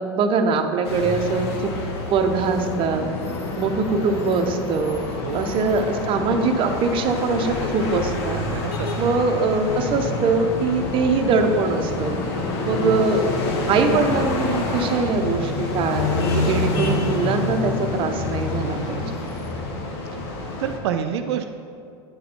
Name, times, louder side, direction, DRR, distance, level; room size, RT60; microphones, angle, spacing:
voice 1, 0.0-1.7 2.1-3.1 3.6-5.0 5.3-8.4 9.0-12.2 12.6-13.3 13.7-19.0, right 4 dB, 40° right, 5 dB, 0.7 m, -22 dB
sound 1, 0.8-20.8, left 3 dB, 75° left, 1.1 m, -27 dB
voice 2, 8.4-9.1 12.8-12.9 20.6-21.5, right 9 dB, 80° right, 6 dB, 0.4 m, -28 dB
9.4 x 4.2 x 4.2 m, 2.5 s
supercardioid pair, 110°, 14 cm